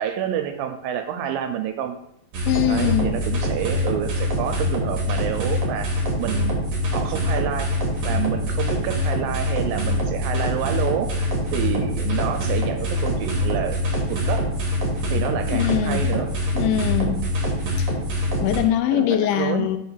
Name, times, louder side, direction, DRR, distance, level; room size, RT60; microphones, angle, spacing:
voice 1, 0.0-2.0 2.7-6.6 6.9-7.7 8.0-13.8 14.1-14.4 15.1-16.3 18.9-19.7, right 9 dB, 85° right, 7 dB, 2.3 m, -28 dB
sound 1, 2.3-18.6, left 1 dB, 60° right, 1.6 m, -24 dB
voice 2, 2.4-3.2 15.5-16.0 16.5-17.2 18.4-19.8, left 11 dB, 85° left, 8 dB, 2.5 m, -22 dB
5.1 x 4.3 x 5.6 m, 0.76 s
omnidirectional pair, 4.2 m